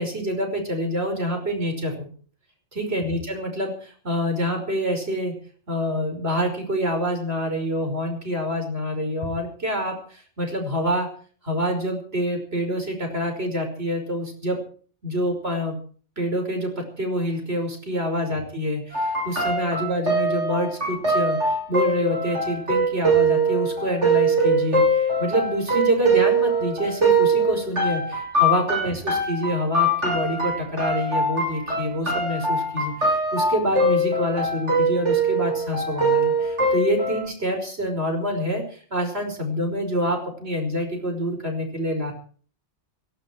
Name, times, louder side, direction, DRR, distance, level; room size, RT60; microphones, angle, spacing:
voice 1, 0.0-2.1 2.7-5.4 5.7-11.1 11.4-14.6 15.0-15.8 16.2-42.1, equal, 60° right, 4 dB, 5.8 m, -26 dB
sound 1, 18.9-37.2, right 2 dB, 75° right, 7.6 m, -22 dB
18.0 x 15.5 x 4.7 m, 0.43 s
omnidirectional pair, 1.2 m